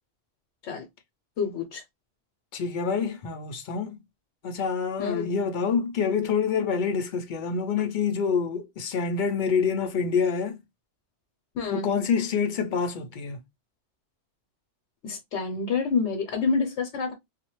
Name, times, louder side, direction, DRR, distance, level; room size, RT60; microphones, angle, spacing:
voice 1, 1.4-1.8 5.0-5.3 11.5-11.9 15.0-17.1, left 5 dB, 80° left, 1.0 m, -28 dB
voice 2, 2.5-4.0 4.4-10.6 11.7-13.4, left 6 dB, 60° left, 0.5 m, -27 dB
2.7 x 2.1 x 2.9 m
omnidirectional pair, 1.2 m